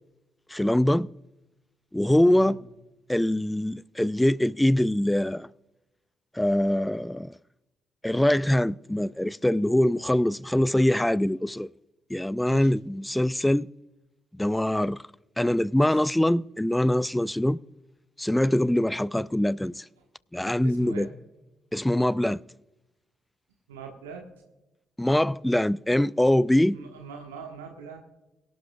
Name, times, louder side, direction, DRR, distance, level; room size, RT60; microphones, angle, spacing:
voice 1, 0.5-1.1 1.9-2.6 3.1-5.5 6.3-7.3 8.0-11.7 12.1-13.7 14.3-15.0 15.4-17.6 18.2-19.8 20.3-21.1 21.7-22.4 25.0-26.8, left 1 dB, 10° left, 0.4 m, -23 dB
voice 2, 20.6-21.1 23.7-24.3 26.7-28.0, right 5 dB, 85° right, 1.2 m, -41 dB
23.5 x 11.5 x 2.3 m
figure-of-eight pair, 40°, 0 cm